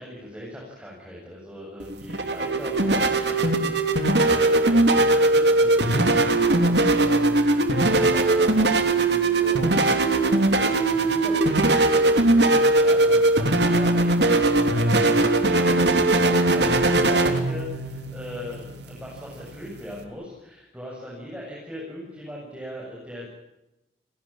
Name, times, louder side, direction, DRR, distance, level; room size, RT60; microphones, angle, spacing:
voice 1, 0.0-12.5 12.8-23.3, left 1 dB, 5° right, -4 dB, 7.5 m, -39 dB
sound 1, 1.8-20.0, right 2 dB, 80° right, 3.3 m, -20 dB
29.5 x 17.5 x 9.0 m, 0.91 s
head